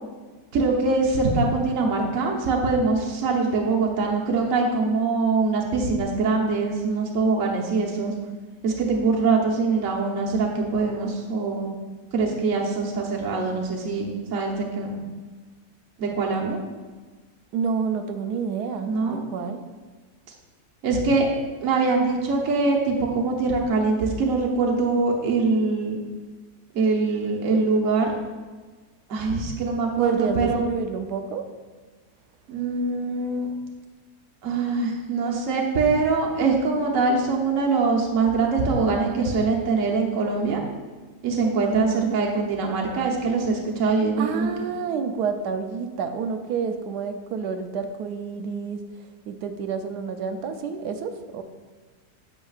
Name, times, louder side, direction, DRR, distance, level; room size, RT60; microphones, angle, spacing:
voice 1, 0.5-8.1 8.6-11.7 12.1-15.0 16.0-16.6 18.8-19.2 20.8-21.3 21.6-26.0 26.7-28.1 29.1-30.6 32.5-33.5 34.4-40.6 41.2-44.5, right 3 dB, 60° right, -1 dB, 1.3 m, -23 dB
voice 2, 17.5-19.6 30.0-31.5 41.7-42.2 44.2-48.8 49.3-51.4, right 6 dB, 90° right, 7 dB, 1.2 m, -29 dB
8.9 x 7.4 x 2.4 m, 1.4 s
omnidirectional pair, 1.7 m